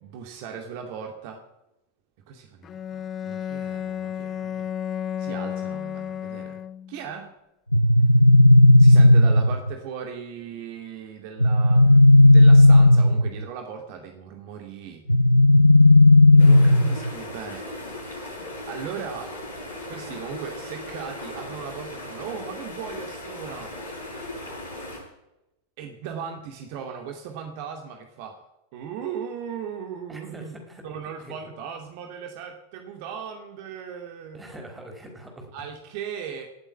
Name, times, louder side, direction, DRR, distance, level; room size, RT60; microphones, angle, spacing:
voice 1, 0.0-1.4 2.3-4.7 5.2-6.6 6.9-7.3 8.8-15.0 16.3-17.7 18.7-19.4 19.9-23.8 25.8-28.4 28.7-30.6 30.8-34.4 35.5-36.5, right 7 dB, 50° right, 4 dB, 2.3 m, -37 dB
Bowed string instrument, 2.6-7.1, left 9 dB, 25° left, 0.7 m, -32 dB
sound 1, 7.7-9.7 11.4-13.4 15.1-17.1, left 1 dB, 90° left, 0.5 m, -13 dB
sound 2, 16.4-25.0, left 1 dB, 75° left, 7.9 m, -37 dB
voice 2, 30.1-30.8 31.2-31.4 34.3-35.7, right 1 dB, 10° right, 3 dB, 5.1 m, -43 dB
17.5 x 8.4 x 9.7 m, 0.91 s
figure-of-eight pair, 90°, 0 cm